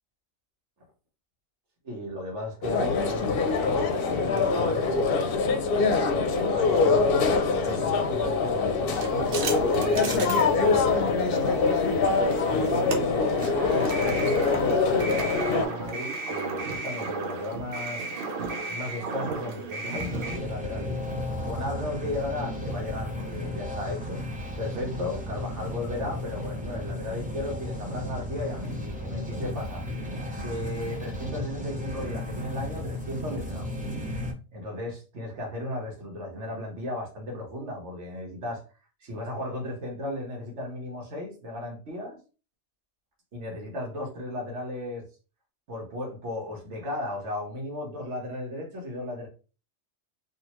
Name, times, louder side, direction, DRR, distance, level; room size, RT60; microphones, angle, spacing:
voice 1, 1.8-5.2 6.1-11.6 12.5-18.1 18.7-21.0 21.4-24.2 24.6-29.9 30.3-33.7 34.5-38.6 39.0-42.2 43.3-45.1 45.7-49.3, left 1 dB, 80° right, 1.4 m, -35 dB
sound 1, 2.6-15.6, left 4 dB, 60° left, 0.7 m, -24 dB
sound 2, 8.9-20.4, right 3 dB, 60° right, 0.8 m, -35 dB
sound 3, 19.9-34.3, left 1 dB, 10° right, 0.6 m, -34 dB
3.5 x 2.5 x 3.0 m
omnidirectional pair, 1.2 m